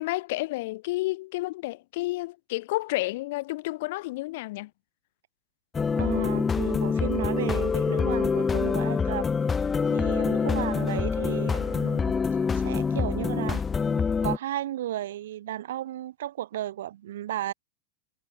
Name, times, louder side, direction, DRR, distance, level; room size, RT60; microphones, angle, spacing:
voice 1, 0.0-4.7 10.4-10.8, left 19 dB, 50° left, 3.8 m, -31 dB
sound 1, 5.7-14.4, left 5 dB, 15° left, 1.4 m, -26 dB
voice 2, 6.0-9.3 9.9-12.1 12.5-13.6 14.2-17.5, right 13 dB, 60° right, 2.8 m, -33 dB
figure-of-eight pair, 90°, 0 cm